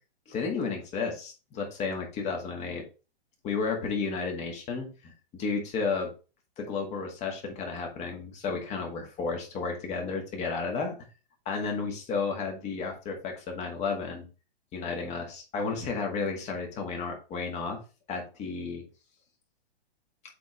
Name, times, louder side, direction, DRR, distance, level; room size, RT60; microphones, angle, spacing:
voice 1, 0.3-2.8 3.4-6.1 6.6-11.0 11.5-14.3 14.7-17.8 18.1-18.8, left 4 dB, 20° left, 2 dB, 1.8 m, -32 dB
7.6 x 3.8 x 3.6 m, 0.32 s
hypercardioid pair, 145°, 31 cm